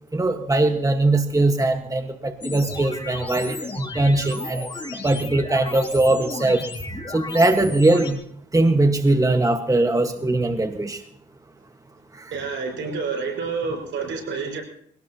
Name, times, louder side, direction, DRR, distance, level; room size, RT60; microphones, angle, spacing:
voice 1, 0.1-4.7 5.0-6.6 7.1-8.2 8.5-11.0 12.1-12.3, right 2 dB, 15° right, 6 dB, 1.5 m, -21 dB
sound 1, 2.4-8.1, left 2 dB, 25° left, 2.9 m, -34 dB
voice 2, 12.3-14.6, right 5 dB, 75° right, 2 dB, 5.4 m, -28 dB
22.5 x 18.0 x 3.0 m, 0.65 s
cardioid pair, 75°, 20 cm